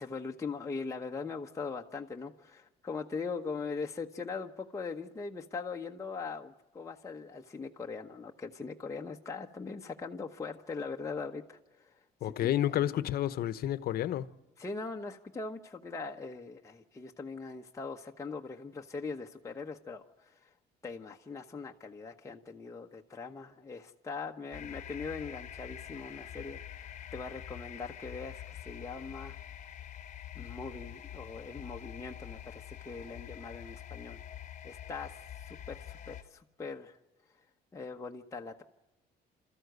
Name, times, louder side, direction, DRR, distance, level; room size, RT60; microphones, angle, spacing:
voice 1, 0.0-12.0 12.4-12.5 14.6-20.5 20.8-29.4 30.3-34.2 34.6-35.2 35.4-37.0 37.7-38.6, left 4 dB, 20° left, 1.1 m, -41 dB
voice 2, 12.2-14.3, left 12 dB, 65° left, 0.9 m, -30 dB
sound 1, 24.5-36.2, left 10 dB, 45° left, 1.2 m, -46 dB
28.0 x 14.0 x 8.1 m
cardioid pair, 110°, 17 cm